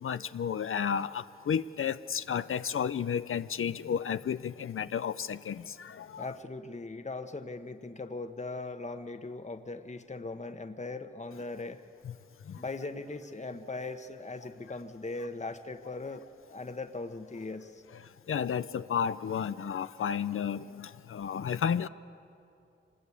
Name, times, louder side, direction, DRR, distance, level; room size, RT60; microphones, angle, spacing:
voice 1, 0.0-6.3 12.0-12.1 18.3-21.9, left 7 dB, 80° left, 0.5 m, -32 dB
voice 2, 6.2-11.8 12.6-16.2 16.5-17.8, left 3 dB, 35° left, 1.1 m, -39 dB
25.0 x 20.5 x 8.5 m
cardioid pair, 45°, 21 cm